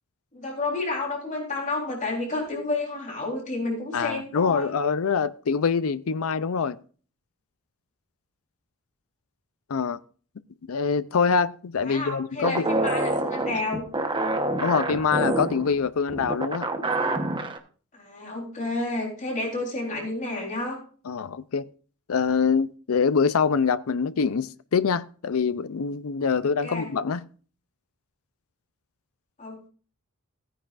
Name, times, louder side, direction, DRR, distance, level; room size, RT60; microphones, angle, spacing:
voice 1, 0.3-4.7 11.8-13.9 17.9-20.8 26.4-26.9 29.4-29.7, left 2 dB, 35° left, 3.8 m, -30 dB
voice 2, 3.9-6.8 9.7-10.0 10.7-12.7 14.6-16.7 21.1-21.6 22.1-27.2, left 5 dB, 70° left, 0.5 m, -24 dB
sound 1, 12.4-17.6, right 2 dB, 25° right, 1.0 m, -27 dB
16.5 x 9.9 x 2.5 m
head